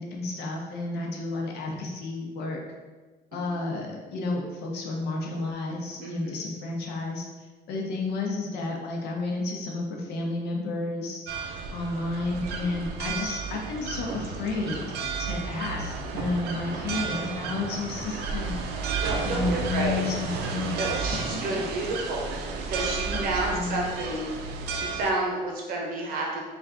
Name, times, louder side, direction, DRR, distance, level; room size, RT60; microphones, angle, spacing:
voice 1, 0.0-2.6 3.3-7.3 7.7-11.2 11.7-14.8 15.2-18.6 19.2-20.8 21.1-21.4 23.1-23.8, left 3 dB, 80° left, 0 dB, 0.8 m, -31 dB
voice 2, 6.0-6.3 12.6-12.8 19.0-20.0 20.7-24.3 24.7-26.4, right 2 dB, 60° right, -1 dB, 1.0 m, -30 dB
sound 1, 11.3-25.1, right 5 dB, 80° right, 0.5 m, -32 dB
3.3 x 2.4 x 3.7 m, 1.3 s
cardioid pair, 110°, 17 cm